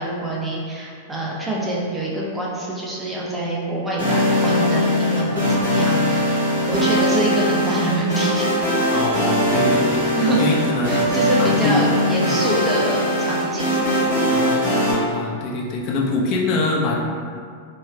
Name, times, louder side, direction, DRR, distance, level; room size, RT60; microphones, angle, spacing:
voice 1, 0.0-6.4 6.7-8.5 8.8-8.9 10.2-10.5 10.9-13.9, right 1 dB, 10° right, -5 dB, 0.7 m, -25 dB
sound 1, 4.0-14.9, equal, 85° right, 1.1 m, -20 dB
voice 2, 8.9-11.0 11.4-11.9 12.2-12.4 14.3-16.9, left 3 dB, 45° left, -2 dB, 0.5 m, -24 dB
3.2 x 2.3 x 2.2 m, 2.1 s
hypercardioid pair, 100°, 0 cm